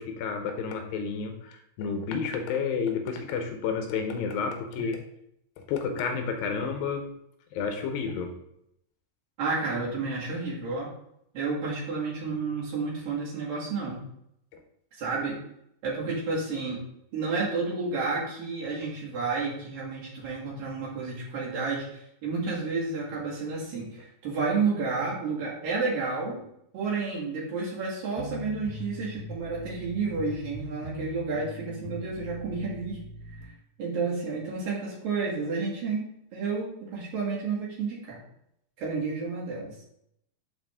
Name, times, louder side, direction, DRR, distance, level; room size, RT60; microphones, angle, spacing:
voice 1, 0.0-5.0 5.7-7.0 7.5-8.3, left 5 dB, 80° left, 5 dB, 2.7 m, -30 dB
voice 2, 9.4-10.9 11.3-14.0 15.0-15.4 15.8-16.8 17.1-26.4 26.7-33.0 33.8-36.1 36.3-38.2 38.8-39.7, right 4 dB, 70° right, -6 dB, 4.0 m, -31 dB
sound 1, 28.2-33.5, left 1 dB, 50° left, 2.2 m, -41 dB
11.0 x 4.2 x 3.6 m, 0.76 s
omnidirectional pair, 4.2 m